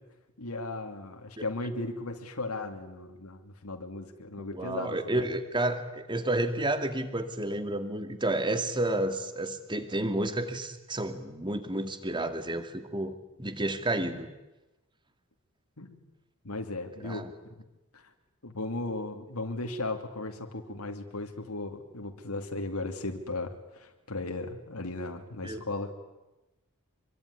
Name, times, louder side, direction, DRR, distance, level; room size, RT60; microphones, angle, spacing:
voice 1, 0.4-5.3 15.8-16.0 16.4-17.3 17.6-17.7 17.9-18.0 18.4-25.9, left 2 dB, 85° left, 4 dB, 2.5 m, -36 dB
voice 2, 4.4-14.3 17.0-17.3 25.4-25.6, right 1 dB, 20° right, 9 dB, 2.4 m, -31 dB
26.0 x 23.5 x 9.8 m, 1.0 s
head